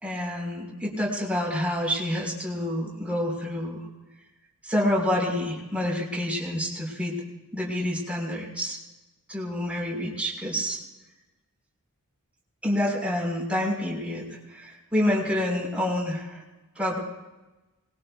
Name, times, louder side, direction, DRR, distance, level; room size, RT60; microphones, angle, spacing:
voice 1, 0.0-3.8 4.6-7.2 7.5-8.8 9.3-10.8 12.6-16.4 16.8-17.0, left 1 dB, 5° right, -3 dB, 4.0 m, -28 dB
26.0 x 20.5 x 2.3 m, 1.1 s
head